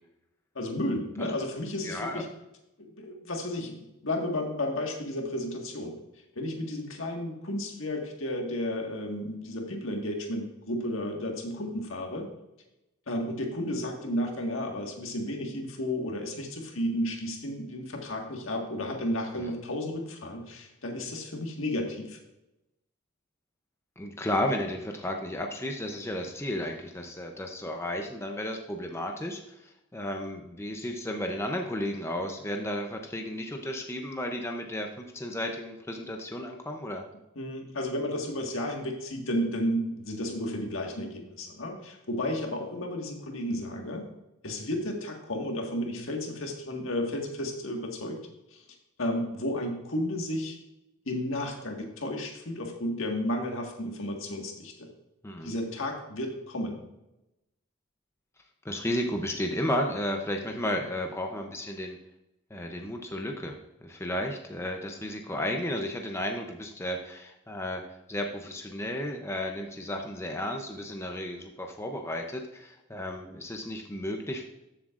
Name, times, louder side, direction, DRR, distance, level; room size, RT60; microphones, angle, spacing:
voice 1, 0.6-2.3 2.8-6.0 6.4-12.3 13.1-22.2 37.4-44.0 44.4-48.2 48.5-48.6 49.0-50.6 51.1-54.9 55.4-56.8, left 1 dB, 70° left, 2 dB, 1.7 m, -32 dB
voice 2, 1.8-2.2 19.4-19.5 24.0-29.4 29.9-37.0 55.2-55.5 58.6-62.0 62.5-67.8 68.1-74.4, left 1 dB, 15° left, 3 dB, 0.6 m, -33 dB
13.5 x 7.5 x 2.5 m, 0.94 s
head